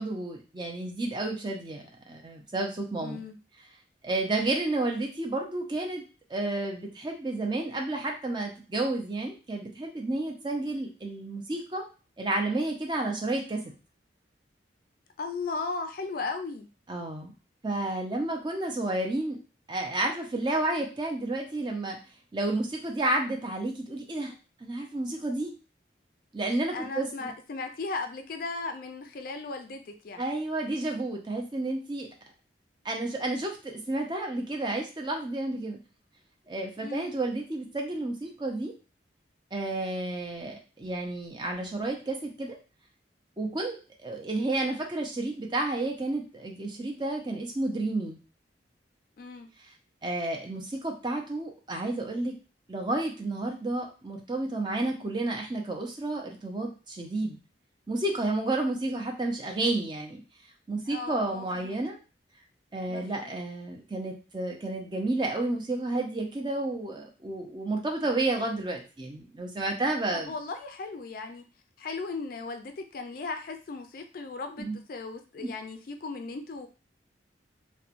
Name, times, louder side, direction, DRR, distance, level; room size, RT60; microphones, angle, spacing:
voice 1, 0.0-3.2 4.0-6.0 6.3-11.8 12.2-13.6 16.9-17.3 17.6-19.4 19.7-22.0 22.3-24.3 24.6-25.5 26.3-27.3 30.2-32.1 32.8-35.8 36.5-38.7 39.5-42.6 43.4-48.2 50.0-52.3 52.7-57.4 57.9-60.2 60.7-62.0 62.7-70.3 74.6-74.8 75.4-75.5, right 2 dB, 25° right, 1 dB, 0.5 m, -31 dB
voice 2, 3.0-3.4 15.2-16.7 26.7-30.2 36.8-37.1 49.2-49.5 60.9-61.8 62.9-63.3 70.1-71.4 71.8-76.7, left 3 dB, 50° left, 6 dB, 0.3 m, -37 dB
3.0 x 2.1 x 2.4 m, 0.33 s
head